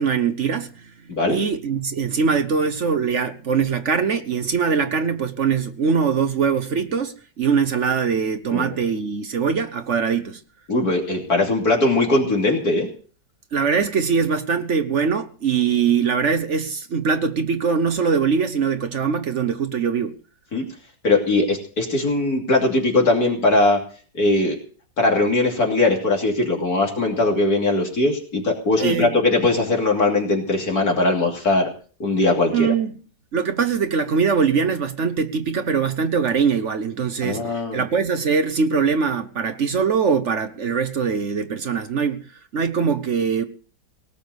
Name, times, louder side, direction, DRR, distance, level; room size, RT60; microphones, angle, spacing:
voice 1, 0.0-0.9 1.3-10.4 13.5-20.2 28.8-29.1 32.5-33.0 33.3-42.2 42.5-43.4, right 6 dB, 50° right, 1.1 m, -22 dB
voice 2, 10.7-12.9 20.5-20.6 21.0-23.8 24.1-24.6 25.0-31.7 32.0-32.7 37.2-37.8, left 2 dB, 55° left, 3.4 m, -20 dB
18.0 x 6.9 x 7.9 m
omnidirectional pair, 1.9 m